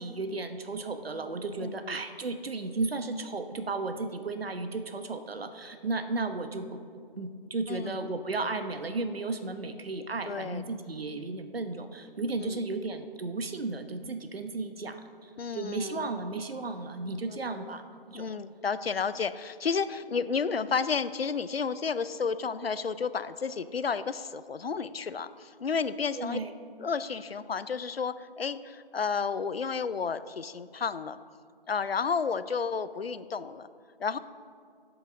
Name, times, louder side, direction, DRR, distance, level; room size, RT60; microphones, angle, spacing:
voice 1, 0.0-6.8 7.1-17.8 18.1-18.3 26.1-26.5, right 3 dB, 80° right, 8 dB, 1.0 m, -34 dB
voice 2, 1.6-2.0 7.7-8.1 10.3-10.6 12.4-12.6 15.4-16.1 17.3-17.8 18.1-26.4 26.8-31.2 31.7-33.7 34.0-34.2, left 5 dB, 85° left, 14 dB, 0.6 m, -32 dB
20.5 x 8.2 x 3.6 m, 2.2 s
figure-of-eight pair, 165°, 29 cm